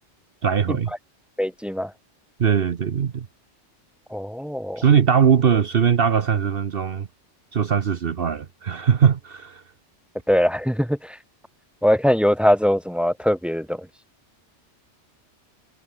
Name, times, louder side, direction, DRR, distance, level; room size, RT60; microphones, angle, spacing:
voice 1, 0.4-0.9 2.4-3.3 4.8-7.1 7.5-9.6, right 7 dB, 55° right, 1.1 m, -20 dB
voice 2, 1.4-1.9 4.1-4.8 10.3-11.2 11.8-13.9, equal, ahead, 0.4 m, -21 dB
omnidirectional pair, 1.2 m